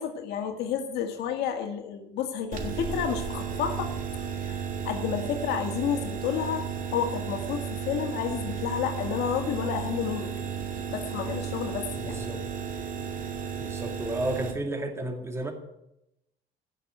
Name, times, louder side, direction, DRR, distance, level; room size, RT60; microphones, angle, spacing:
voice 1, 0.0-10.3 10.9-12.2, left 8 dB, 80° left, 4 dB, 1.9 m, -31 dB
sound 1, 2.5-14.5, right 7 dB, 50° right, 2.4 m, -34 dB
voice 2, 11.9-12.4 13.6-15.5, right 1 dB, 15° right, 4 dB, 2.2 m, -32 dB
16.5 x 6.3 x 9.1 m, 0.85 s
cardioid pair, 110°, 17 cm